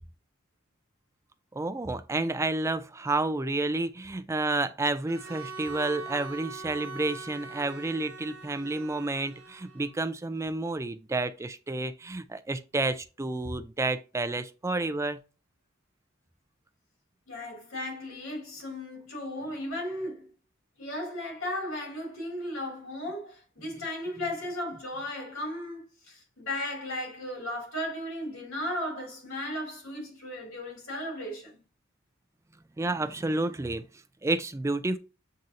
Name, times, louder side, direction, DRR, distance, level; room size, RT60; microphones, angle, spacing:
voice 1, 1.5-15.2 32.8-33.8 34.2-35.0, right 2 dB, 15° right, 0.3 m, -30 dB
Bowed string instrument, 5.1-10.0, right 4 dB, 80° right, 0.7 m, -42 dB
voice 2, 17.3-20.3 20.8-31.5, left 1 dB, 75° left, 2.6 m, -35 dB
7.5 x 2.7 x 2.6 m
head